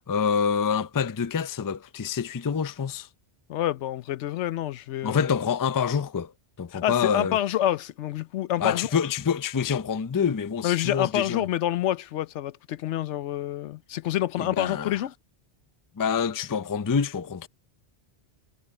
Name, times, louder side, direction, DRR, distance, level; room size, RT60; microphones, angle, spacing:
voice 1, 0.0-3.1 5.0-6.3 6.6-7.4 8.6-11.5 14.4-15.0 16.0-17.5, left 6 dB, 30° left, 0.3 m, -26 dB
voice 2, 3.5-5.3 6.7-8.9 10.6-15.1, left 12 dB, 90° left, 0.9 m, -27 dB
omnidirectional pair, 1.1 m